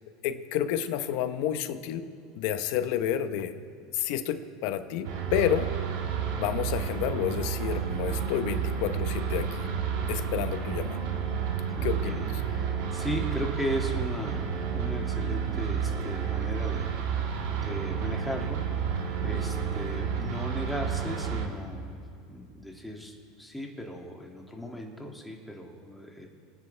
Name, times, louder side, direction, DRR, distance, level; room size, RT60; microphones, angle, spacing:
voice 1, 0.2-2.1 2.4-3.6 3.9-5.7 6.4-9.8 10.1-11.1 11.8-12.2, left 10 dB, 70° left, 10 dB, 0.9 m, -30 dB
sound 1, 5.0-21.5, right 7 dB, 70° right, 1.8 m, -31 dB
voice 2, 11.8-14.4 14.7-16.9 17.6-18.6 19.2-22.0 22.3-26.3, equal, 5° left, 0 dB, 2.3 m, -36 dB
29.0 x 9.8 x 3.4 m, 2.5 s
supercardioid pair, 105°, 0 cm